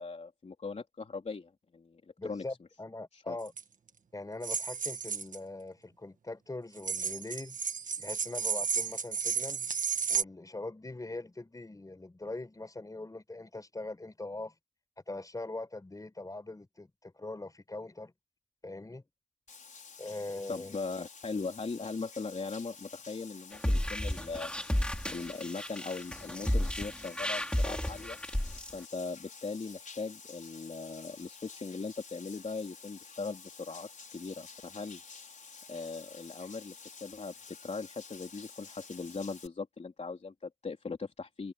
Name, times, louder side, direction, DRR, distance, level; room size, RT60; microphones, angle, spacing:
voice 1, 0.0-2.4 3.1-3.4 20.5-24.5 25.1-28.2 28.7-35.0 35.7-36.7 37.0-41.5, left 4 dB, 55° left, 3.4 m, -39 dB
voice 2, 2.2-3.5 4.1-7.6 8.0-9.7 10.1-14.5 15.1-18.1 18.6-19.0 20.0-20.7, left 2 dB, 25° left, 6.4 m, -42 dB
sound 1, 3.5-3.6 4.4-5.4 6.8-10.2, right 6 dB, 85° right, 1.6 m, -33 dB
Bathtub (filling or washing), 19.5-39.5, left 5 dB, 80° left, 6.1 m, -51 dB
sound 2, 23.5-28.7, left 1 dB, 5° left, 5.4 m, -32 dB
wide cardioid pair, 105°, 13 cm